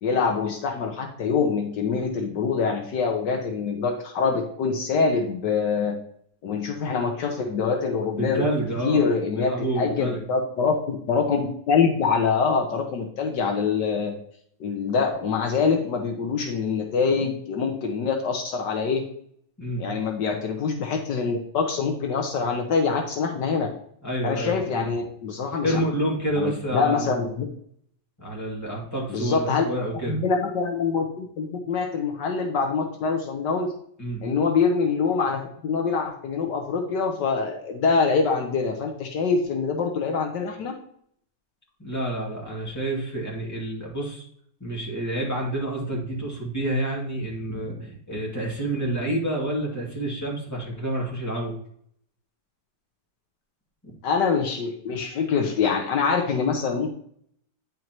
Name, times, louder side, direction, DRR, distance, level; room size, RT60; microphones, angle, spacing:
voice 1, 0.0-6.0 6.4-8.4 8.8-14.2 14.6-19.1 19.8-23.7 24.2-25.8 26.4-27.5 29.1-29.6 30.1-33.7 34.2-40.7 54.0-56.9, left 5 dB, 75° left, 3 dB, 1.5 m, -25 dB
voice 2, 8.2-9.1 9.4-10.2 19.6-19.8 24.0-24.9 25.6-27.2 28.2-30.2 34.0-34.2 41.8-44.3 44.6-51.5, right 1 dB, 10° left, -4 dB, 2.3 m, -28 dB
9.3 x 5.3 x 3.0 m, 0.65 s
omnidirectional pair, 1.9 m